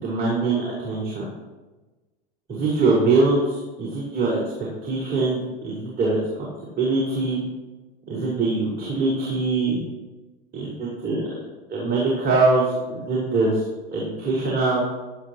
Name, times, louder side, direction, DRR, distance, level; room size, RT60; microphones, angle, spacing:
voice 1, 0.0-1.2 2.5-4.4 4.8-6.5 6.8-7.4 8.1-9.8 10.5-11.2 11.7-12.7 13.1-14.8, right 3 dB, 30° right, -5 dB, 5.0 m, -23 dB
16.5 x 12.0 x 3.1 m, 1.2 s
hypercardioid pair, 90°, 31 cm